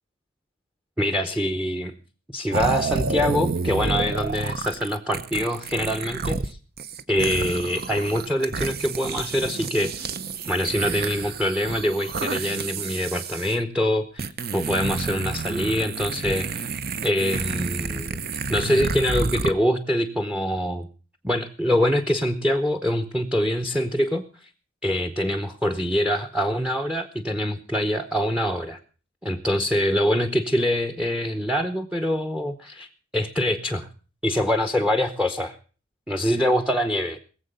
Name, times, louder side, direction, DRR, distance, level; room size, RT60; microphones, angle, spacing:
voice 1, 1.0-1.9 2.3-6.6 7.1-10.1 10.5-14.3 14.5-16.7 17.0-18.2 18.5-20.9 21.2-24.5 24.8-28.8 29.2-32.9 33.1-33.9 34.2-35.6 36.1-37.2, equal, 5° right, 7 dB, 0.8 m, -24 dB
sound 1, 2.5-6.5 6.8-13.5 14.2-19.5, right 4 dB, 50° right, 0.7 m, -29 dB
20.5 x 7.6 x 6.7 m, 0.39 s
head